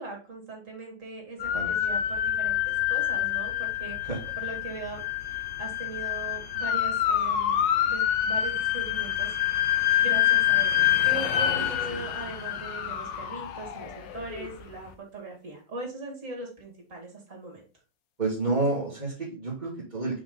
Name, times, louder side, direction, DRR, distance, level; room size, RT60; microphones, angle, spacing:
voice 1, 0.0-4.1 4.4-5.0 5.3-9.4 10.0-17.6, right 3 dB, 45° right, 1 dB, 2.8 m, -40 dB
sound 1, 1.4-14.5, left 11 dB, 80° left, 1.5 m, -27 dB
voice 2, 11.6-12.0 18.2-20.2, right 3 dB, 25° right, -7 dB, 2.1 m, -30 dB
5.8 x 5.1 x 3.9 m, 0.35 s
omnidirectional pair, 2.0 m